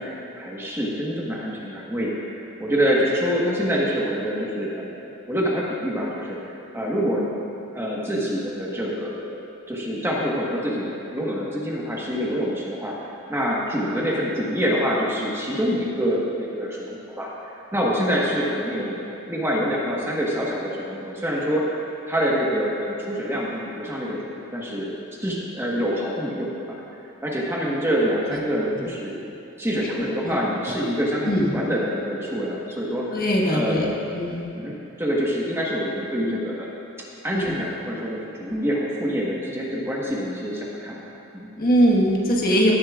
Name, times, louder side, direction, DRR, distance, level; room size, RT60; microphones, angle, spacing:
voice 1, 0.0-2.1 2.4-6.4 6.7-7.3 7.7-9.3 9.7-13.0 13.3-17.3 17.7-21.6 22.1-26.7 27.2-29.2 29.6-33.2 33.5-34.0 34.5-36.7 37.2-41.0 41.3-41.5, equal, 10° right, -4 dB, 1.3 m, -26 dB
voice 2, 31.2-31.6 33.1-34.5 37.3-37.6 41.6-42.7, equal, 40° left, -3 dB, 1.5 m, -21 dB
17.5 x 10.5 x 2.4 m, 3.0 s
head